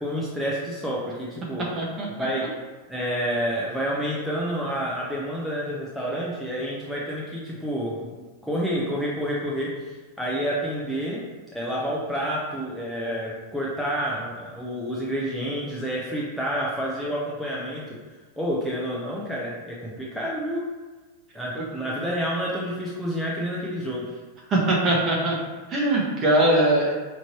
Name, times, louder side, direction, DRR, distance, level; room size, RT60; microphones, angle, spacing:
voice 1, 0.0-1.7 2.2-2.5 2.9-11.2 11.5-18.0 18.4-20.6 21.3-24.1, equal, ahead, -6 dB, 0.7 m, -29 dB
voice 2, 24.5-25.3 25.7-26.9, right 1 dB, 30° right, -2 dB, 1.2 m, -21 dB
5.7 x 3.1 x 2.9 m, 1.3 s
supercardioid pair, 130°, 0 cm